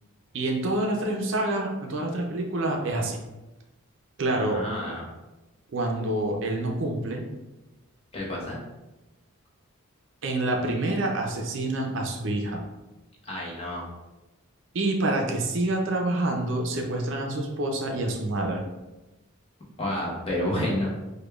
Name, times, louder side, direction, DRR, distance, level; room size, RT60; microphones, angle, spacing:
voice 1, 0.3-3.2 4.2-4.6 5.7-7.2 10.2-12.6 14.7-18.6, right 2 dB, 55° right, 1 dB, 0.5 m, -27 dB
voice 2, 4.4-5.1 8.1-8.6 13.2-13.9 19.8-20.9, left 1 dB, 25° left, -4 dB, 0.7 m, -29 dB
4.9 x 2.2 x 2.3 m, 1.0 s
head